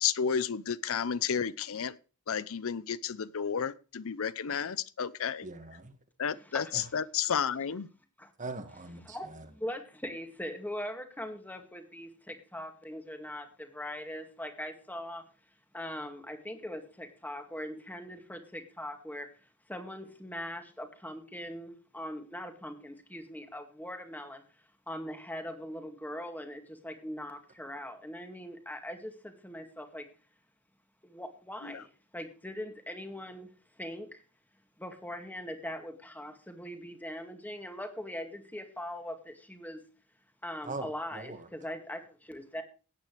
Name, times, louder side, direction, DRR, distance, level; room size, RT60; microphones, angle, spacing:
voice 1, 0.0-1.9 2.3-5.5 6.2-7.9 31.6-31.8, left 7 dB, 70° left, 17 dB, 0.6 m, -32 dB
voice 2, 5.4-5.9 6.7-6.9 8.4-9.5 40.6-41.5, right 3 dB, 35° right, 8 dB, 1.8 m, -41 dB
voice 3, 6.3-6.7 8.2-8.3 9.1-15.3 15.7-19.3 19.7-24.4 24.9-30.1 31.0-33.5 33.8-34.2 34.8-39.8 40.4-42.6, left 1 dB, 10° left, 6 dB, 2.1 m, -41 dB
17.0 x 9.3 x 3.3 m, 0.35 s
head